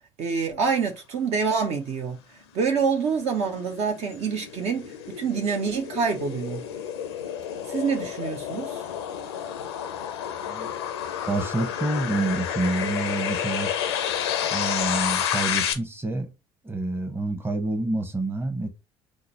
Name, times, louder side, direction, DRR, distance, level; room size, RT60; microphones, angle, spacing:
voice 1, 0.2-2.2 2.5-6.6 7.7-8.8, right 5 dB, 55° right, 0.6 m, -26 dB
sound 1, 2.5-15.7, left 9 dB, 85° left, 0.5 m, -30 dB
voice 2, 11.3-13.7 14.5-16.3 16.6-18.7, right 2 dB, 15° right, 0.9 m, -28 dB
4.9 x 2.0 x 2.8 m
hypercardioid pair, 60°, 13 cm